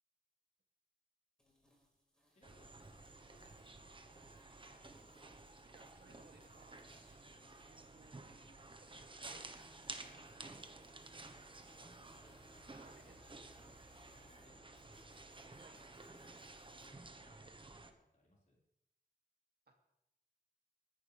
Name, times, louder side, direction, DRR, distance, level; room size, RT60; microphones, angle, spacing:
sound 1, 1.4-16.8, right 1 dB, 5° left, 4.6 m, -70 dB
voice 1, 2.3-4.6 14.1-15.2 16.1-18.6, left 1 dB, 50° left, -4 dB, 4.8 m, -71 dB
sound 2, 2.4-17.9, right 2 dB, 30° right, 1.2 m, -54 dB
sound 3, 3.4-16.2, left 3 dB, 80° left, 3.9 m, -73 dB
voice 2, 5.6-8.6 8.9-9.4 10.0-10.8 12.1-12.3 12.6-13.7 15.5-15.9 16.2-16.3 19.7-19.8, right 3 dB, 75° right, 2 dB, 2.7 m, -66 dB
20.5 x 11.0 x 3.5 m, 0.87 s
wide cardioid pair, 95°, 16 cm